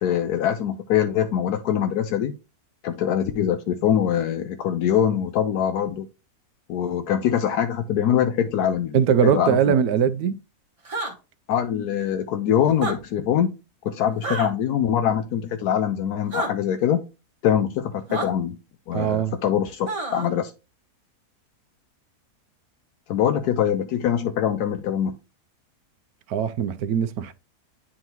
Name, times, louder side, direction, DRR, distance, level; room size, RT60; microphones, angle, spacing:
voice 1, 0.0-2.3 2.8-6.1 6.7-9.8 11.5-13.6 13.8-17.0 17.4-18.6 18.9-20.5 23.1-25.2, left 9 dB, 80° left, 1.1 m, -23 dB
voice 2, 8.9-10.4 18.9-19.3 26.3-27.3, right 8 dB, 75° right, 1.1 m, -21 dB
sound 1, 10.8-11.1 12.7-13.0 14.2-14.5 16.3-16.5 18.1-18.3 19.9-20.3, right 2 dB, 25° right, 1.1 m, -28 dB
9.8 x 3.7 x 3.0 m
omnidirectional pair, 1.7 m